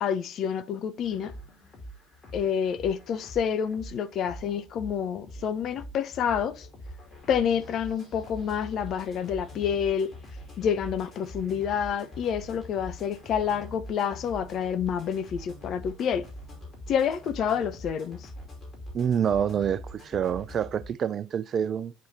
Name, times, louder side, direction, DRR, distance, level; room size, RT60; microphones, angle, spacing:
voice 1, 0.0-1.3 2.3-6.7 7.3-10.1 10.6-16.2 16.9-18.3, left 8 dB, 45° left, 0.5 m, -28 dB
sound 1, 1.0-20.9, equal, 30° left, 2.6 m, -44 dB
voice 2, 18.9-21.9, right 8 dB, 40° right, 0.3 m, -27 dB
8.3 x 3.1 x 4.1 m
figure-of-eight pair, 65°, 0 cm